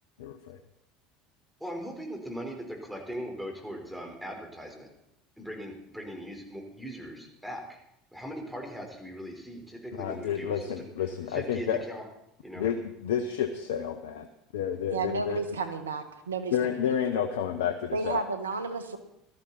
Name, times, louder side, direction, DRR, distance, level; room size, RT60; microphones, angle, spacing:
voice 1, 0.2-0.6 9.9-11.8 12.6-14.3 14.5-15.4 16.5-18.2, left 8 dB, 75° left, 7 dB, 1.0 m, -30 dB
voice 2, 1.6-4.9 5.4-7.8 8.1-10.9 11.3-12.0 12.4-12.6, equal, 5° right, 1 dB, 4.7 m, -39 dB
voice 3, 14.9-16.8 17.9-19.0, right 4 dB, 90° right, 9 dB, 1.4 m, -32 dB
17.0 x 13.0 x 4.3 m, 0.80 s
hypercardioid pair, 75°, 0 cm